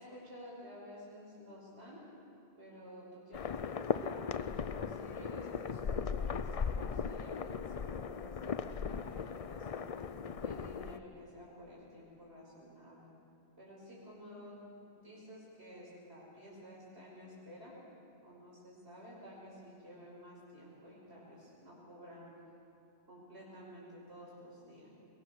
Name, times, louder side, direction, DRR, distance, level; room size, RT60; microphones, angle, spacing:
voice 1, 0.0-2.0 2.6-9.9 10.4-13.0 13.6-14.6 14.9-17.8 18.2-22.4 23.1-24.9, equal, 70° right, -6 dB, 5.8 m, -52 dB
sound 1, 3.3-11.0, left 6 dB, 45° left, 0.5 m, -38 dB
22.0 x 22.0 x 6.7 m, 2.7 s
omnidirectional pair, 1.1 m